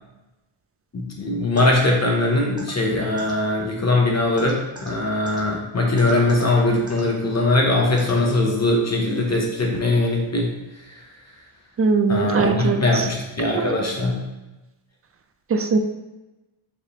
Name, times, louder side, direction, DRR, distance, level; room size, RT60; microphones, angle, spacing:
voice 1, 0.9-10.5 12.1-14.2, left 2 dB, 30° left, -1 dB, 0.8 m, -21 dB
sound 1, 1.6-1.7 2.6-2.7 3.2-3.3 4.4-4.9 5.3-5.4 6.0-6.4 6.9-7.0 8.0-8.1, right 2 dB, 10° right, 1.0 m, -38 dB
voice 2, 11.8-13.1 13.5-13.7 15.5-15.8, right 4 dB, 30° right, 7 dB, 0.3 m, -21 dB
4.5 x 3.5 x 3.0 m, 1.0 s
cardioid pair, 90°, 50 cm